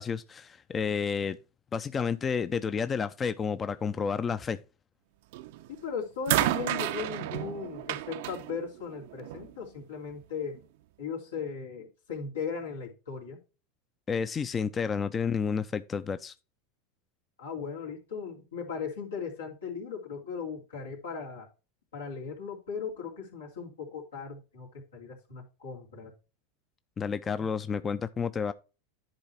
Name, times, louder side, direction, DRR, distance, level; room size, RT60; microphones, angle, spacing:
voice 1, 0.0-1.4 1.7-4.6 14.1-16.3 27.0-28.5, left 6 dB, 25° left, 0.5 m, -30 dB
sound 1, 5.3-5.7 6.3-9.5 10.5-10.6, right 14 dB, 65° right, 0.5 m, -31 dB
voice 2, 5.7-10.6 11.0-13.4 17.4-21.5 21.9-26.1 27.4-27.5, left 6 dB, 90° left, 2.9 m, -38 dB
10.5 x 4.0 x 4.3 m
hypercardioid pair, 95°, 0 cm